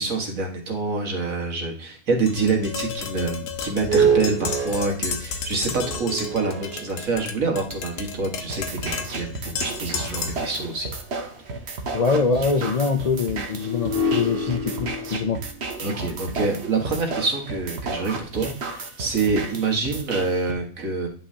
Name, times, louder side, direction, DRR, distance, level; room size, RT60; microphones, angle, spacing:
voice 1, 0.0-10.9 15.8-21.1, right 3 dB, 85° right, 2 dB, 2.1 m, -26 dB
Tap, 2.3-10.5, left 5 dB, 75° left, 1.3 m, -33 dB
sound 1, 3.7-7.5 8.2-8.3 13.5-17.8, right 3 dB, 40° right, 1.4 m, -27 dB
sound 2, 8.5-20.5, right 3 dB, 55° right, 1.3 m, -33 dB
voice 2, 11.9-15.4, left 4 dB, 55° left, 6 dB, 0.4 m, -23 dB
9.8 x 5.6 x 2.8 m, 0.43 s
omnidirectional pair, 1.4 m